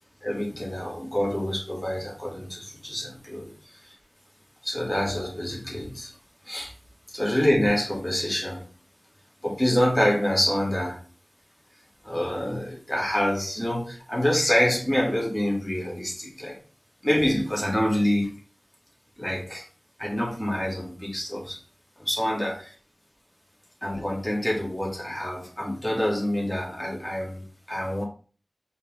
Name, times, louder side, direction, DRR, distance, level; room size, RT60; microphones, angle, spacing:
voice 1, 0.2-3.9 4.6-6.1 6.4-6.7 7.1-8.7 9.4-11.0 12.0-16.6 17.0-18.4 19.2-19.6 20.0-21.6 22.0-22.7 23.8-28.0, left 1 dB, 15° left, -1 dB, 1.7 m, -26 dB
4.7 x 3.0 x 3.5 m, 0.39 s
wide cardioid pair, 45°, 0 cm